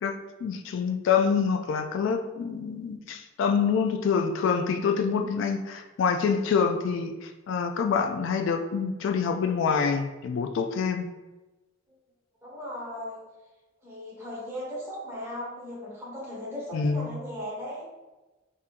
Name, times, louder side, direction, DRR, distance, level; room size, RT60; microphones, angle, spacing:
voice 1, 0.0-11.1 16.7-17.1, left 6 dB, 65° left, 5 dB, 0.3 m, -26 dB
voice 2, 4.8-5.3 12.4-13.2 13.8-17.9, left 1 dB, 15° right, -6 dB, 1.3 m, -37 dB
4.2 x 3.6 x 2.5 m, 1.1 s
head